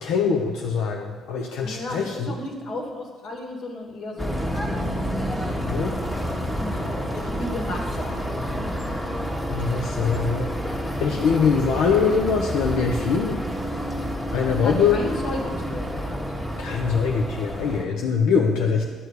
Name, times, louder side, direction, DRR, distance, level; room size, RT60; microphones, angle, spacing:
voice 1, 0.0-2.3 5.7-5.9 9.5-10.5 11.0-13.4 14.3-15.0 16.6-18.8, left 5 dB, 90° left, 1 dB, 0.9 m, -23 dB
voice 2, 1.6-4.4 4.6-5.3 6.2-8.2 14.6-15.9, left 1 dB, 55° left, 1 dB, 2.2 m, -33 dB
sound 1, 4.2-17.8, equal, 10° left, 1.5 m, -29 dB
12.5 x 4.8 x 8.2 m, 1.5 s
cardioid pair, 125°, 0 cm